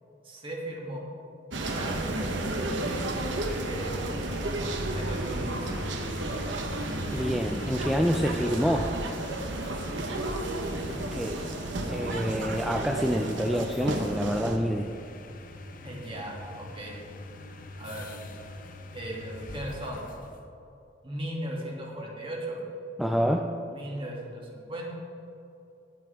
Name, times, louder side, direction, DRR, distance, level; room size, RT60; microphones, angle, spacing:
voice 1, 0.2-1.1 1.6-3.1 3.6-4.5 4.9-5.8 10.0-10.2 15.8-16.9 17.8-18.1 18.9-20.0 21.0-22.6 23.7-24.9, right 1 dB, 30° right, -2 dB, 2.4 m, -38 dB
sound 1, 1.5-14.6, right 2 dB, 80° right, 1.2 m, -32 dB
sound 2, 3.4-20.4, left 1 dB, 45° left, 0.8 m, -41 dB
voice 2, 7.1-8.9 11.1-11.4 11.9-14.9 23.0-23.5, equal, ahead, 3 dB, 0.4 m, -27 dB
19.5 x 8.6 x 3.5 m, 2.7 s
head